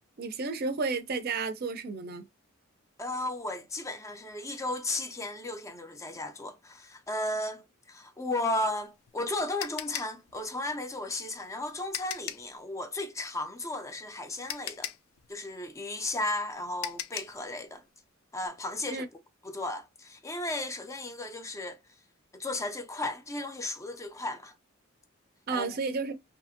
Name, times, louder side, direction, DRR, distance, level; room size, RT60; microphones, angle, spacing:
voice 1, 0.2-2.2 18.9-19.1 25.5-26.2, right 4 dB, 50° right, 0.5 m, -32 dB
voice 2, 3.0-14.9 15.3-17.8 18.3-19.1 19.4-21.8 22.3-24.5 25.5-25.7, left 2 dB, 15° left, 0.4 m, -35 dB
sound 1, 8.7-12.6 14.0-14.1 14.5-17.5, left 11 dB, 90° left, 0.4 m, -39 dB
2.7 x 2.6 x 2.5 m
head